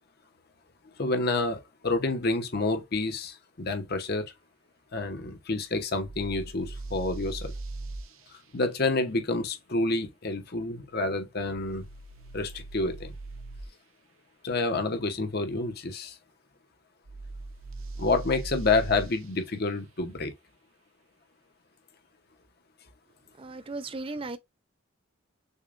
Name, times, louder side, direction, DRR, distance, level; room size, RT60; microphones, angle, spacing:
voice 1, 1.0-4.2 4.9-7.5 8.5-11.9 12.3-13.1 14.4-16.2 18.0-20.3, left 3 dB, 50° left, 0.9 m, -28 dB
sound 1, 6.0-8.1 11.5-13.7 17.1-19.1, right 2 dB, 85° right, 0.7 m, -39 dB
voice 2, 23.4-24.4, right 3 dB, 25° right, 0.5 m, -36 dB
6.5 x 2.3 x 2.5 m
head